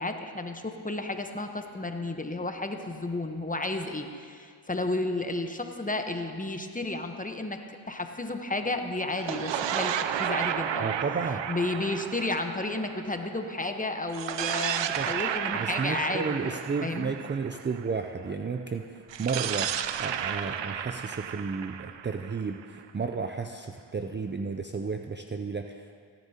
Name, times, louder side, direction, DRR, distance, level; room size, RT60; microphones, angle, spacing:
voice 1, 0.0-7.6 7.9-10.9 11.5-17.1, left 2 dB, 15° left, 5 dB, 1.1 m, -32 dB
sound 1, 9.1-13.5 14.1-18.0 19.1-22.9, right 9 dB, 65° right, 0.6 m, -32 dB
voice 2, 10.8-11.4 15.0-15.1 15.5-26.0, right 5 dB, 25° right, 5 dB, 0.5 m, -33 dB
16.5 x 11.5 x 2.9 m, 2.2 s
cardioid pair, 50°, 48 cm